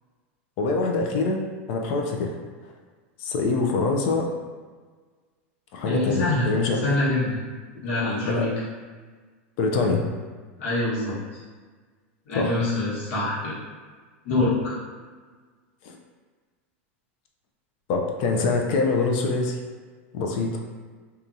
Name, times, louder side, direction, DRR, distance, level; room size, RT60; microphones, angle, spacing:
voice 1, 0.6-1.4 1.7-2.4 3.2-4.3 5.7-7.0 8.3-8.5 9.6-10.0 12.3-12.6 15.8-16.0 17.9-19.6 20.1-20.6, left 3 dB, 55° left, 1 dB, 0.4 m, -24 dB
voice 2, 5.8-6.5 6.8-7.4 7.8-8.5 10.6-11.2 12.3-13.5 14.2-14.7, left 2 dB, 70° left, -8 dB, 1.2 m, -25 dB
2.8 x 2.3 x 2.6 m, 1.4 s
supercardioid pair, 130°, 7 cm